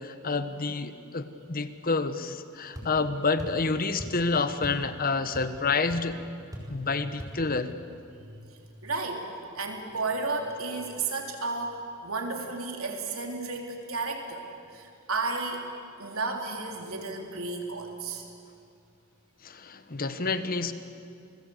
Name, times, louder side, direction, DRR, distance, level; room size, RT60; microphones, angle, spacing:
voice 1, 0.0-6.2 6.7-7.7 19.4-20.7, left 4 dB, 45° left, 11 dB, 1.2 m, -28 dB
sound 1, 2.7-2.9 3.4-3.6 4.0-4.2 4.6-4.9 5.1-5.6 5.9-6.0 6.5-6.8 7.2-7.4, equal, 15° right, 4.9 m, -40 dB
voice 2, 8.3-9.3 9.6-14.5 14.7-15.7 16.0-18.3, right 3 dB, 75° right, 2 dB, 3.4 m, -33 dB
28.5 x 20.0 x 8.0 m, 2.5 s
head